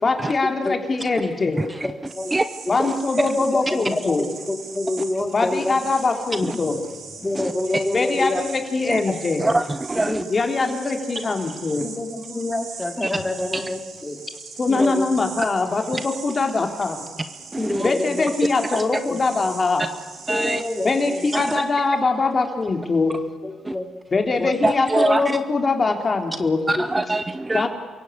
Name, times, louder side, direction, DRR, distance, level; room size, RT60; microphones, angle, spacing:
voice 1, 0.0-1.6 2.7-4.3 5.3-7.2 7.9-9.5 10.3-11.9 14.6-17.0 17.8-19.9 20.8-23.1 24.1-26.6 27.5-27.7, left 3 dB, 35° left, 4 dB, 3.5 m, -22 dB
voice 2, 1.6-1.9 2.3-2.5 2.8-3.3 6.4-6.5 7.3-7.5 8.9-9.0 9.4-10.2 13.0-13.1 13.5-13.6 14.7-14.9 15.9-16.0 17.5-17.9 18.7-18.8 20.3-20.6 21.3-21.4 23.6-23.7 24.6-25.4 26.7-27.7, right 2 dB, 15° right, 11 dB, 0.8 m, -24 dB
sound 1, 2.0-21.6, right 5 dB, 70° right, 4.9 m, -40 dB
voice 3, 3.3-5.8 7.2-8.4 9.1-9.2 10.0-10.2 11.8-14.2 14.7-15.1 17.6-18.3 20.3-21.3 23.4-23.9 24.4-24.5 26.8-26.9, left 2 dB, 15° left, 5 dB, 2.9 m, -27 dB
28.5 x 16.5 x 8.3 m, 1.4 s
cardioid pair, 90°, 0 cm